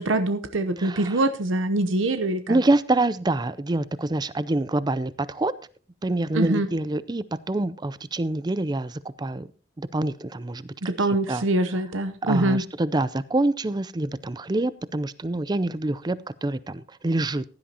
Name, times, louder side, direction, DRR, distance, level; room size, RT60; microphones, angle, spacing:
voice 1, 0.0-2.6 6.3-6.7 10.8-12.6, right 2 dB, 85° right, 10 dB, 0.8 m, -24 dB
voice 2, 0.8-1.2 2.5-5.5 6.0-9.5 9.8-10.7 11.3-11.4 12.2-17.4, right 2 dB, 20° right, 17 dB, 0.5 m, -26 dB
15.5 x 11.5 x 2.8 m, 0.39 s
head